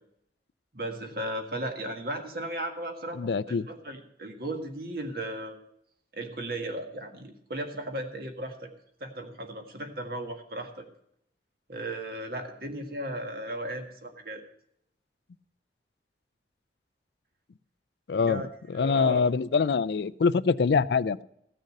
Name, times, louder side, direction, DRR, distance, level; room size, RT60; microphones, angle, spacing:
voice 1, 0.7-5.6 6.1-8.7 9.0-10.9 11.7-14.4 18.2-18.5 18.7-19.2, right 1 dB, 55° right, 5 dB, 1.7 m, -36 dB
voice 2, 3.2-3.7 18.1-18.4 18.7-21.2, left 5 dB, 65° left, 18 dB, 0.4 m, -24 dB
15.5 x 6.5 x 6.4 m, 0.74 s
head